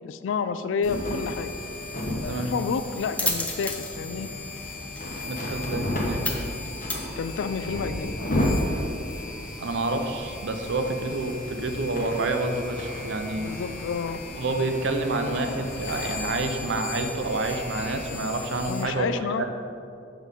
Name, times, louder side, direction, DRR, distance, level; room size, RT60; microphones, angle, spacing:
voice 1, 0.0-1.6 2.2-4.3 7.2-8.2 13.4-14.2 18.7-19.4, left 5 dB, 85° left, 12 dB, 0.3 m, -30 dB
sound 1, 0.8-18.8, left 1 dB, 45° left, 1.1 m, -33 dB
sound 2, 1.5-7.8, left 2 dB, 5° left, 0.5 m, -35 dB
voice 2, 5.3-6.2 9.6-13.5 14.4-19.4, right 2 dB, 70° right, 6 dB, 0.6 m, -28 dB
6.4 x 3.9 x 5.2 m, 2.5 s
head